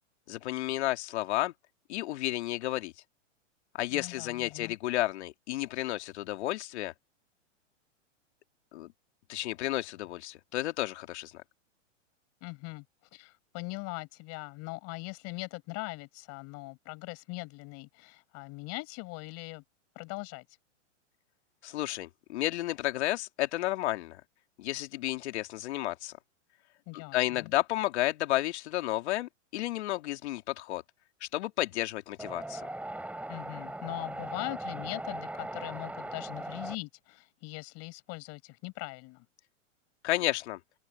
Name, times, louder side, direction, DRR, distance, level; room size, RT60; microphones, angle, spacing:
voice 1, 0.3-1.5 1.9-2.9 3.8-6.9 8.7-8.9 9.3-11.3 21.6-24.2 24.6-26.1 27.1-30.8 31.2-32.7 40.0-40.6, left 16 dB, 60° left, 2.6 m, -32 dB
voice 2, 3.9-4.8 12.4-12.8 13.1-19.6 20.0-20.5 26.9-27.5 33.3-39.3, left 26 dB, 40° left, 7.3 m, -41 dB
Wind, 32.2-36.8, right 1 dB, 5° right, 3.7 m, -39 dB
open air
hypercardioid pair, 125°, 38 cm